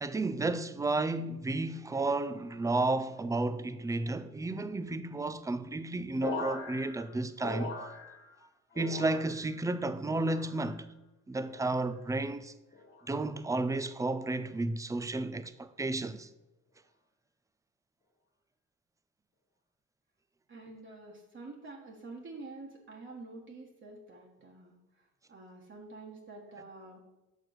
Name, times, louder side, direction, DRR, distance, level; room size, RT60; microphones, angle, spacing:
voice 1, 0.0-7.7 8.8-10.9 11.3-12.5 13.1-16.3, right 2 dB, 10° right, 0.4 m, -32 dB
sound 1, 6.2-8.4 8.7-9.6 10.1-10.8 11.4-11.8 12.7-13.1 14.0-14.3, left 3 dB, 40° left, 1.5 m, -42 dB
voice 2, 20.5-27.0, right 3 dB, 40° right, 1.4 m, -48 dB
6.3 x 4.5 x 6.4 m
cardioid pair, 90°, 30 cm